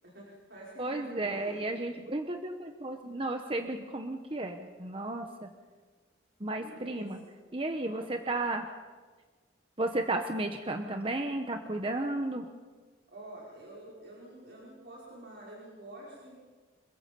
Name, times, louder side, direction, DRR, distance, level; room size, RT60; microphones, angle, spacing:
voice 1, 0.0-1.7 6.6-7.3 7.8-8.0 13.1-16.4, right 1 dB, 60° right, -5 dB, 5.4 m, -48 dB
voice 2, 0.8-5.5 6.4-7.2 7.5-8.7 9.8-12.5, right 2 dB, 30° right, 5 dB, 1.2 m, -33 dB
27.5 x 22.0 x 5.4 m, 1.4 s
head